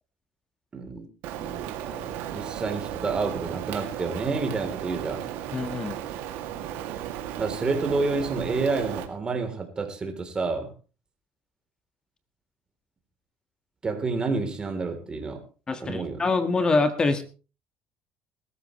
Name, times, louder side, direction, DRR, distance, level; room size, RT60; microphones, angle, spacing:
voice 1, 0.7-1.1 1.4-1.6 1.9-5.3 7.4-10.7 13.8-15.4 15.8-16.3, right 4 dB, 25° right, 5 dB, 3.6 m, -29 dB
Rain, 1.2-9.1, right 11 dB, 80° right, 2.5 m, -35 dB
voice 2, 5.5-6.0 15.7-17.2, left 3 dB, 25° left, 9 dB, 1.7 m, -24 dB
21.0 x 13.5 x 3.2 m, 0.34 s
cardioid pair, 125°, 4 cm